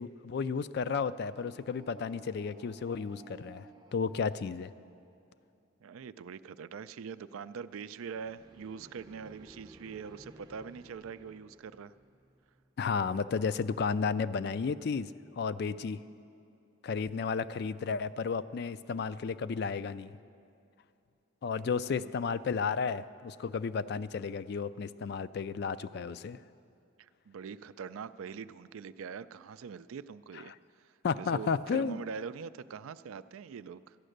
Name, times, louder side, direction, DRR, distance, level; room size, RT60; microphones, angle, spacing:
voice 1, 0.0-3.7 3.9-4.7 12.8-16.0 16.8-20.1 21.4-26.4 31.0-32.0, left 5 dB, 55° left, 15 dB, 0.3 m, -33 dB
Distant Alien War Machines, 1.0-5.3 7.9-12.9, right 2 dB, 20° right, 0.5 m, -57 dB
voice 2, 5.8-11.9 15.7-15.8 21.6-22.1 27.0-34.0, right 6 dB, 90° right, 14 dB, 0.4 m, -43 dB
13.5 x 10.0 x 6.5 m, 2.6 s
head